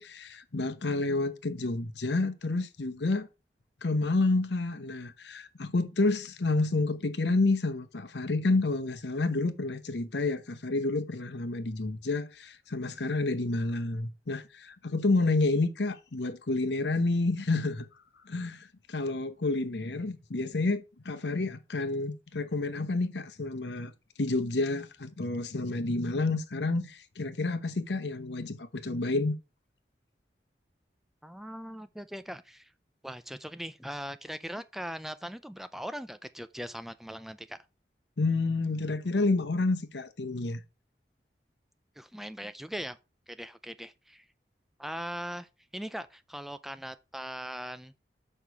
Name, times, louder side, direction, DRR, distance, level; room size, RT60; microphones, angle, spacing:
voice 1, 0.0-3.3 3.8-17.9 18.3-23.9 24.2-29.3 38.2-40.6, left 2 dB, 85° left, 0.9 m, -29 dB
voice 2, 31.2-32.7 33.0-37.6 42.0-43.0 43.3-44.2 44.8-47.9, equal, ahead, 0.3 m, -40 dB
6.7 x 5.5 x 4.5 m
head